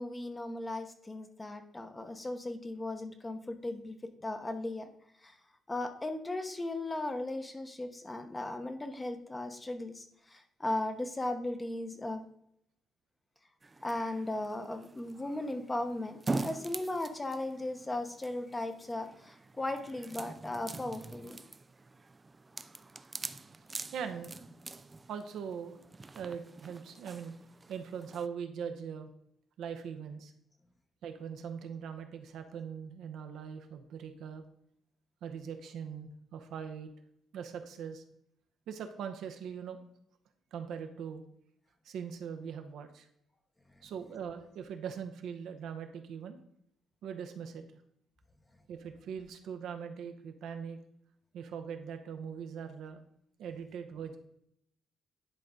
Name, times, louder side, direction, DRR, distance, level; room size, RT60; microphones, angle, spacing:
voice 1, 0.0-4.9 5.2-5.4 5.7-12.3 13.8-21.4, left 2 dB, 20° left, 7 dB, 0.9 m, -37 dB
sound 1, 13.6-28.3, right 3 dB, 25° right, 0.4 m, -44 dB
voice 2, 23.9-24.4 25.1-25.8 26.1-27.3 27.7-29.1 29.6-30.3 31.0-34.4 35.2-36.9 37.3-38.0 38.7-39.8 40.5-41.2 41.8-43.1 43.8-46.4 47.0-47.6 48.7-50.8 51.3-53.0 53.4-54.2, right 7 dB, 75° right, 7 dB, 0.8 m, -41 dB
10.5 x 3.9 x 3.7 m, 0.74 s
cardioid pair, 90°, 0 cm